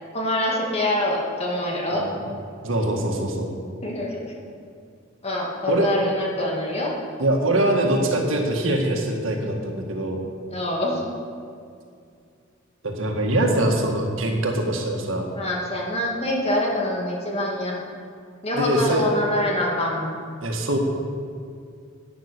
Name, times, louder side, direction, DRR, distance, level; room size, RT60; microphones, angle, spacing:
voice 1, 0.1-2.0 3.8-4.3 5.2-6.9 10.5-11.0 15.3-17.7 18.4-20.1, left 1 dB, 30° left, -2 dB, 2.4 m, -25 dB
voice 2, 1.9-2.2 2.6-3.5 5.7-5.9 7.2-10.2 12.8-15.3 18.5-19.1 20.4-20.8, right 1 dB, 75° right, 2 dB, 1.8 m, -23 dB
11.5 x 9.5 x 6.8 m, 2.3 s
head